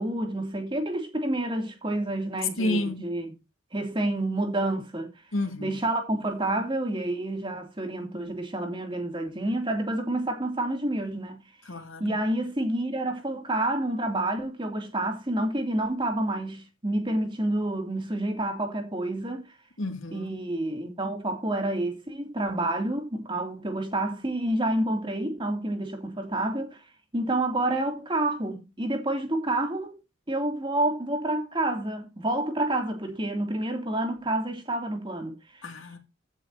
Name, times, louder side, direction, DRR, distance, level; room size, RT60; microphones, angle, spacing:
voice 1, 0.0-3.3 3.7-5.1 5.6-11.4 12.0-19.5 20.1-26.8 27.1-30.0 30.3-35.7, right 1 dB, 25° right, 2.7 m, -29 dB
voice 2, 2.6-3.0 5.3-5.8 11.7-12.2 19.8-20.3 35.6-36.0, left 1 dB, 80° left, 2.4 m, -30 dB
15.0 x 7.6 x 2.8 m
head